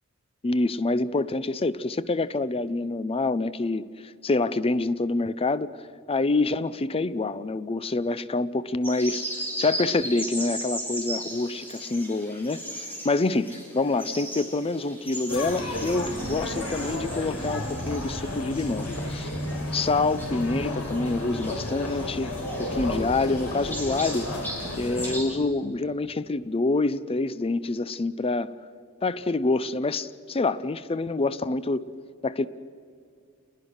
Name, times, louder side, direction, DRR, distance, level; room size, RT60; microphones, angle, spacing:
voice 1, 0.4-5.7 6.1-19.3 19.7-22.3 22.6-24.3 24.8-28.5 29.0-31.9 32.2-32.5, left 3 dB, 25° left, 15 dB, 0.5 m, -26 dB
sound 1, 8.8-25.3, right 1 dB, 10° left, 6.3 m, -38 dB
sound 2, 15.3-25.2, left 1 dB, 80° left, 4.5 m, -32 dB
29.5 x 21.0 x 6.4 m, 2.3 s
head